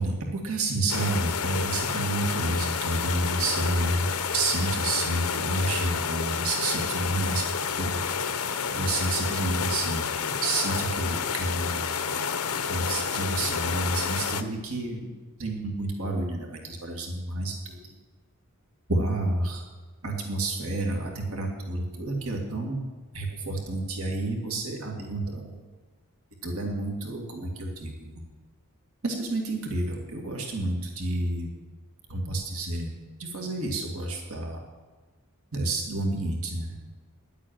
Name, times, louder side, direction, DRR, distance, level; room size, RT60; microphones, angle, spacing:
voice 1, 0.0-4.1 4.3-8.0 8.7-10.1 10.4-12.0 12.6-15.1 15.4-17.9 18.9-19.6 20.0-22.8 23.1-25.6 26.4-28.2 29.0-31.5 32.1-32.9 33.2-34.6 35.5-36.8, right 2 dB, 65° right, 1 dB, 2.4 m, -29 dB
sound 1, 0.9-14.4, left 6 dB, 80° left, 0.8 m, -30 dB
11.0 x 8.3 x 9.0 m, 1.4 s
head